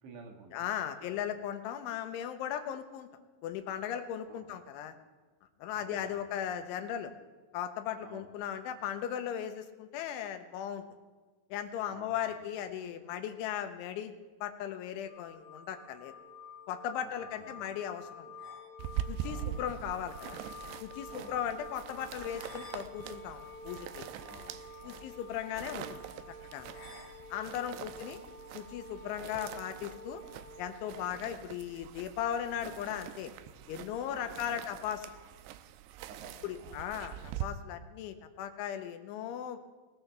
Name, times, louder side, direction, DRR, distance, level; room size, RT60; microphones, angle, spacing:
voice 1, 0.0-1.2 4.3-4.5 5.7-6.5 8.0-8.4 11.9-12.4 17.0-17.7 19.2-19.7 21.1-21.7 24.3-25.2 27.7-27.9 34.1-34.7 36.1-36.9, right 4 dB, 70° right, 3 dB, 3.9 m, -54 dB
voice 2, 0.5-3.1 3.4-5.0 5.6-7.1 7.5-10.8 11.5-14.1 14.4-16.1 16.7-18.4 19.1-20.4 20.8-24.1 24.8-26.1 26.5-26.7 27.3-28.2 28.5-30.2 30.6-33.3 33.7-35.2 36.4-39.6, left 9 dB, 85° left, 8 dB, 3.3 m, -37 dB
sound 1, 15.0-31.0, left 2 dB, 45° left, 5.5 m, -49 dB
sound 2, 18.8-37.5, right 11 dB, 85° right, 2.5 m, -44 dB
19.5 x 19.0 x 3.5 m, 1.3 s
omnidirectional pair, 5.5 m